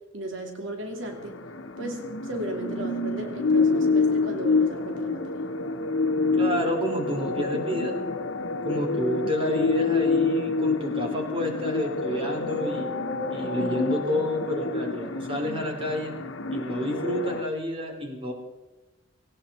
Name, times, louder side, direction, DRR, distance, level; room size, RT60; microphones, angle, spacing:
voice 1, 0.1-1.4 1.8-5.4, right 1 dB, 80° right, 4 dB, 2.4 m, -35 dB
sound 1, 1.1-17.4, left 3 dB, 80° left, 1.1 m, -27 dB
voice 2, 6.3-8.0 8.6-12.9 13.3-16.1 16.5-18.3, equal, 30° right, 2 dB, 3.4 m, -29 dB
19.0 x 18.0 x 4.3 m, 1.1 s
head